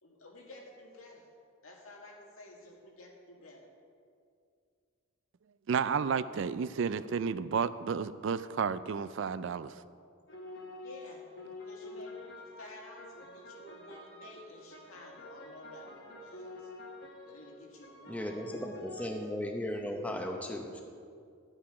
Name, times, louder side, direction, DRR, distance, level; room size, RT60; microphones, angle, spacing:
voice 1, 0.0-1.3 1.6-3.7 10.7-11.3 11.7-16.7 17.2-18.7, left 1 dB, 80° left, 0 dB, 1.9 m, -52 dB
voice 2, 5.7-9.7, right 6 dB, 60° right, 15 dB, 0.3 m, -32 dB
sound 1, 10.3-19.2, left 2 dB, 50° left, 1.4 m, -48 dB
voice 3, 18.1-20.8, left 1 dB, 5° left, 3 dB, 0.8 m, -36 dB
12.0 x 8.8 x 4.8 m, 2.3 s
head